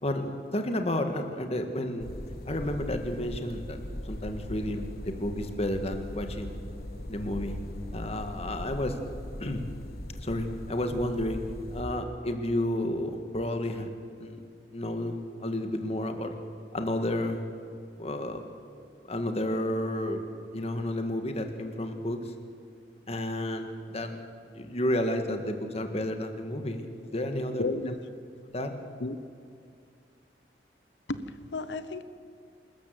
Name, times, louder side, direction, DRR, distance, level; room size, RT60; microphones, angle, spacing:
voice 1, 0.0-2.1 2.5-3.8 4.1-6.6 7.1-7.6 7.9-9.0 9.4-9.6 10.1-13.9 14.2-14.4 14.7-15.2 15.4-16.3 16.7-17.4 18.0-18.4 19.0-20.2 20.5-22.3 23.1-27.6 28.5-28.7, left 1 dB, 35° left, 6 dB, 1.8 m, -31 dB
sound 1, 2.0-11.8, left 1 dB, 60° left, 1.5 m, -40 dB
voice 2, 27.6-28.0 29.0-29.2 31.1-32.0, left 3 dB, 90° left, 12 dB, 1.1 m, -33 dB
27.0 x 13.5 x 7.8 m, 2.3 s
head